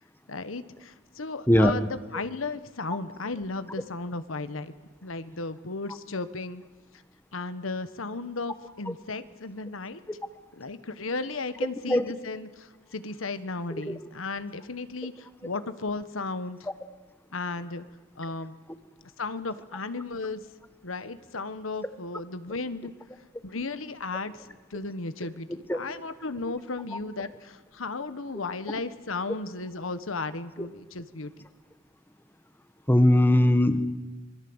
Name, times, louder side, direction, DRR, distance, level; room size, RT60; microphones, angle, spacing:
voice 1, 0.3-4.7 5.0-6.6 7.3-10.0 10.5-16.7 17.3-17.8 18.2-18.6 19.2-20.4 20.8-22.9 23.4-31.4, left 3 dB, 90° left, 12 dB, 1.3 m, -35 dB
voice 2, 32.9-33.8, left 1 dB, 10° left, 10 dB, 1.3 m, -19 dB
26.5 x 22.0 x 8.0 m, 1.1 s
head